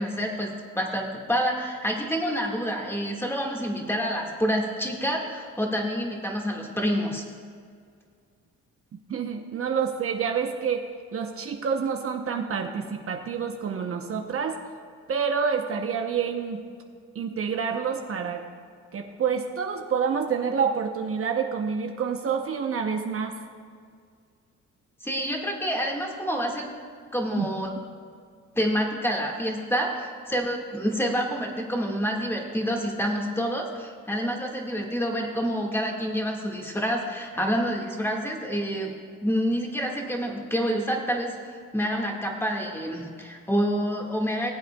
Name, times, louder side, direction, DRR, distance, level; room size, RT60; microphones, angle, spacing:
voice 1, 0.0-7.2 25.0-26.7 27.1-27.7 28.5-38.9 39.2-44.5, equal, 10° left, 0 dB, 1.7 m, -28 dB
voice 2, 9.1-10.9 11.1-14.6 15.1-16.6 17.1-18.4 18.9-23.4 27.4-27.5, right 6 dB, 50° right, 3 dB, 0.8 m, -28 dB
19.5 x 8.1 x 2.3 m, 2.1 s
cardioid pair, 90°, 30 cm